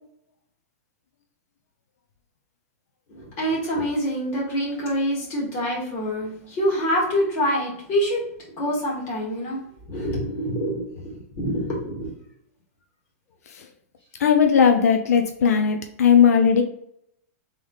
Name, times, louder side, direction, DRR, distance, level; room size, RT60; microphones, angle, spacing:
voice 1, 3.1-8.3 8.6-9.6 9.9-11.0 11.3-12.1, equal, 30° left, -3 dB, 1.8 m, -26 dB
voice 2, 14.2-16.6, left 7 dB, 85° left, 5 dB, 0.6 m, -17 dB
3.8 x 3.5 x 3.8 m, 0.70 s
supercardioid pair, 160°, 8 cm